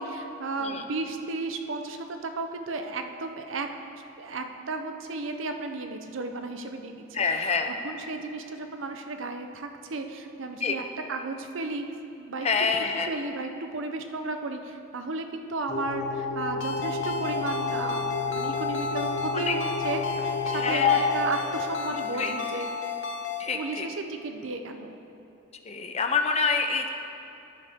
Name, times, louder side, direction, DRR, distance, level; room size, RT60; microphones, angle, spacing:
voice 1, 0.0-3.7 4.2-7.5 7.8-10.8 11.1-11.8 12.2-12.5 13.1-22.7 23.5-24.9, right 3 dB, 70° right, 6 dB, 0.7 m, -34 dB
voice 2, 7.1-7.7 10.6-10.7 12.4-13.1 19.3-19.5 20.5-21.1 22.2-22.3 23.4-23.9 25.7-26.9, left 5 dB, 30° left, 5 dB, 0.6 m, -27 dB
sound 1, 15.7-22.2, left 4 dB, 90° left, 2.2 m, -30 dB
Ringtone, 16.6-23.5, left 6 dB, 65° left, 0.8 m, -33 dB
13.0 x 8.7 x 3.6 m, 2.9 s
head